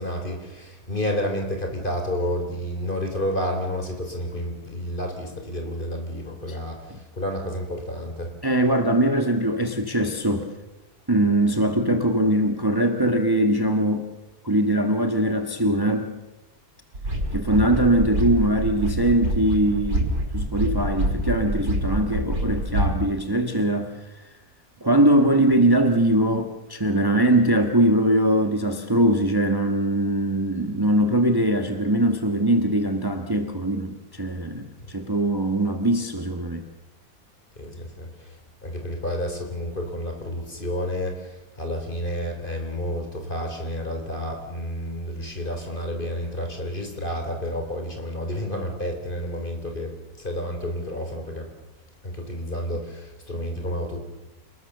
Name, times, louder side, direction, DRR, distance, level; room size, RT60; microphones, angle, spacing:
voice 1, 0.0-8.4 34.8-34.9 37.6-38.4 38.6-51.5 52.0-54.0, equal, 35° left, 4 dB, 3.9 m, -30 dB
voice 2, 8.4-10.5 11.1-14.1 14.4-16.1 17.3-24.3 24.8-36.6, right 1 dB, 15° right, 5 dB, 1.6 m, -21 dB
sound 1, 16.9-23.0, right 1 dB, 75° right, 5.6 m, -26 dB
28.0 x 20.5 x 6.8 m, 1.0 s
omnidirectional pair, 1.6 m